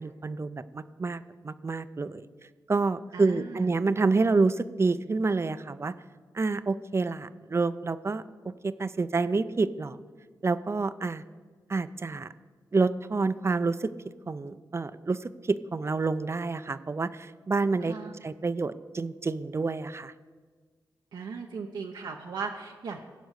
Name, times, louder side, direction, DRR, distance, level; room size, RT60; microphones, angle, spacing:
voice 1, 0.0-2.3 2.7-5.9 6.3-10.0 10.4-11.2 11.7-12.3 12.7-13.9 14.3-17.9 18.2-20.1, right 3 dB, 35° right, 14 dB, 0.5 m, -28 dB
voice 2, 3.1-3.7 17.8-18.1 21.1-23.0, right 5 dB, 80° right, 2 dB, 0.7 m, -37 dB
15.5 x 5.2 x 6.4 m, 1.5 s
cardioid pair, 55°, 8 cm